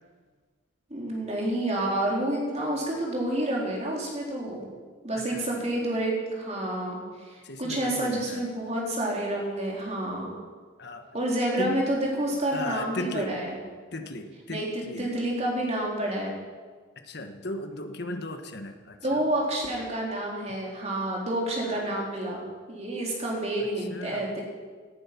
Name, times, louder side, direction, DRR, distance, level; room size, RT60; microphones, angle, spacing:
voice 1, 0.9-4.7 5.0-10.3 11.1-13.6 14.5-16.3 19.0-22.4 22.7-24.4, right 1 dB, 30° right, -2 dB, 3.8 m, -29 dB
voice 2, 5.1-5.7 7.4-8.4 10.8-11.1 11.6-11.9 12.5-13.3 13.9-15.1 17.0-19.2 21.8-22.0 23.8-24.2, left 1 dB, 55° left, 6 dB, 1.4 m, -36 dB
18.0 x 11.0 x 6.0 m, 1.5 s
head